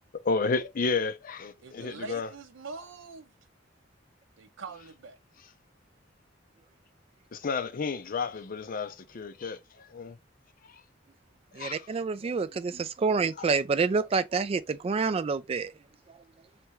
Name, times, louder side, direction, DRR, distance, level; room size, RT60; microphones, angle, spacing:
voice 1, 0.2-2.3 7.3-10.2 10.7-10.8 11.5-11.9 13.4-13.5, left 4 dB, 45° left, 0.5 m, -31 dB
voice 2, 1.6-3.3 4.4-5.2, right 4 dB, 85° right, 0.6 m, -43 dB
voice 3, 11.5-15.7, right 4 dB, 30° right, 0.3 m, -28 dB
3.5 x 3.2 x 3.0 m
head